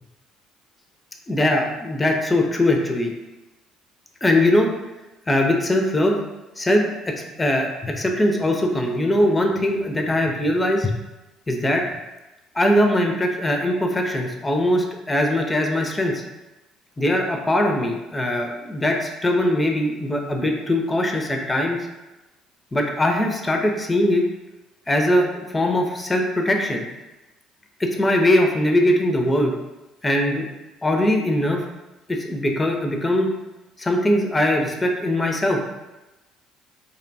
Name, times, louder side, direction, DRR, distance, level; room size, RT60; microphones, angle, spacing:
voice 1, 1.3-3.1 4.2-4.7 5.3-6.2 6.6-11.0 11.5-11.8 12.5-16.2 17.0-21.8 22.7-24.3 24.9-26.9 27.8-29.5 30.0-30.5 30.8-31.6 32.1-33.3 33.8-35.6, left 1 dB, 20° left, 2 dB, 0.4 m, -21 dB
2.6 x 2.2 x 2.6 m, 1.0 s
hypercardioid pair, 65°, 0 cm